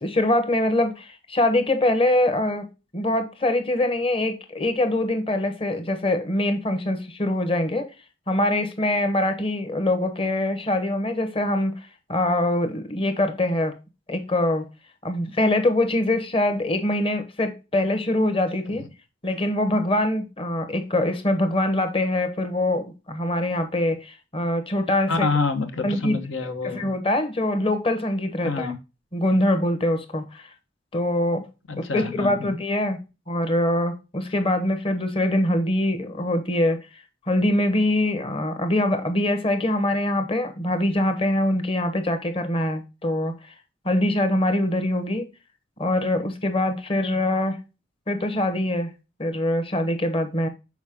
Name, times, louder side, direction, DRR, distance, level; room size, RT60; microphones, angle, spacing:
voice 1, 0.0-2.7 2.9-7.9 8.3-13.8 14.1-14.7 15.0-18.8 19.2-25.3 25.8-26.2 26.6-28.7 29.1-30.5 30.9-31.5 31.8-33.0 33.3-43.4 43.8-45.3 45.8-47.6 48.1-48.9 49.2-50.5, left 1 dB, 30° left, 1.0 m, -23 dB
voice 2, 25.1-26.9 28.4-28.8 31.7-32.5, left 4 dB, 75° left, 1.1 m, -27 dB
6.2 x 4.6 x 3.6 m
head